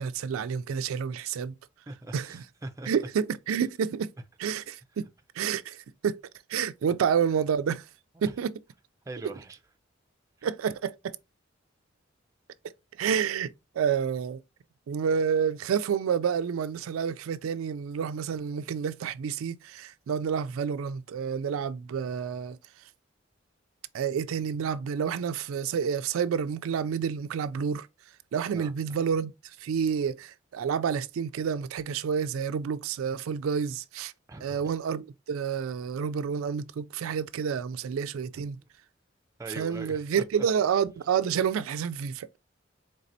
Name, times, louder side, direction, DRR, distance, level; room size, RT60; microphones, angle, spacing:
voice 1, 0.0-1.5 2.1-2.4 2.9-4.1 4.4-5.1 5.4-6.2 6.5-7.8 8.2-8.5 10.4-11.2 13.0-14.4 14.9-22.6 23.9-27.9 28.3-29.3 29.6-34.1 34.4-38.6 39.6-42.4, right 7 dB, 90° right, 0.3 m, -29 dB
voice 2, 1.9-2.9 8.2-8.3 9.1-9.6 10.4-10.5 28.5-29.0 34.3-34.7 38.3-38.4 39.4-40.5, right 2 dB, 15° right, 0.4 m, -41 dB
4.2 x 3.2 x 2.6 m
head